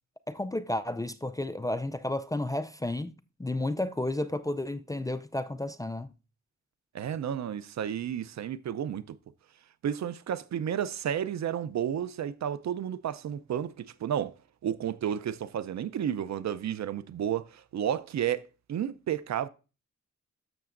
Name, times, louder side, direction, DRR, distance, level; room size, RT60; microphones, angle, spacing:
voice 1, 0.3-3.1 3.4-6.1, left 1 dB, 10° left, 0.3 m, -32 dB
voice 2, 6.9-9.2 9.8-14.3 14.6-19.5, right 9 dB, 65° right, 0.5 m, -32 dB
12.0 x 6.8 x 2.5 m
cardioid pair, 95°, 30 cm